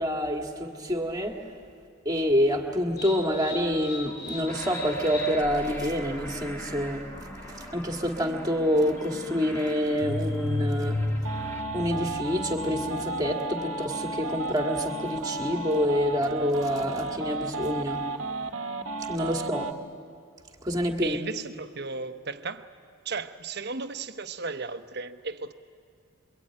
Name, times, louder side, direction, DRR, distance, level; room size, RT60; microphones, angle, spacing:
voice 1, 0.0-1.4 2.1-7.0 7.5-11.4 11.7-18.0 19.1-19.7 20.6-21.2, equal, 20° right, 1.9 m, -27 dB
sound 1, 3.0-13.6, left 2 dB, 50° left, 3.0 m, -36 dB
sound 2, 4.5-11.6, equal, 10° left, 2.3 m, -42 dB
sound 3, 11.2-19.7, right 2 dB, 75° right, 1.2 m, -33 dB
voice 2, 21.0-22.7 23.0-25.5, right 4 dB, 50° right, 1.0 m, -35 dB
27.0 x 22.5 x 8.9 m
head